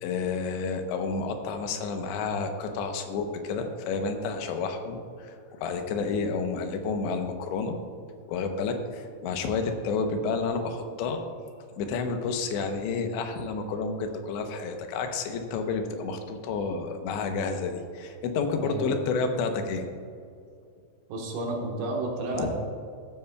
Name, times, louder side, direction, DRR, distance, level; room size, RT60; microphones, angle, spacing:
voice 1, 0.0-7.8 8.3-11.3 11.8-19.8 22.3-22.5, left 4 dB, 90° left, 5 dB, 3.2 m, -30 dB
voice 2, 18.5-19.0 21.1-22.5, right 2 dB, 65° right, -1 dB, 3.0 m, -31 dB
14.5 x 12.5 x 2.3 m, 2.3 s
omnidirectional pair, 5.0 m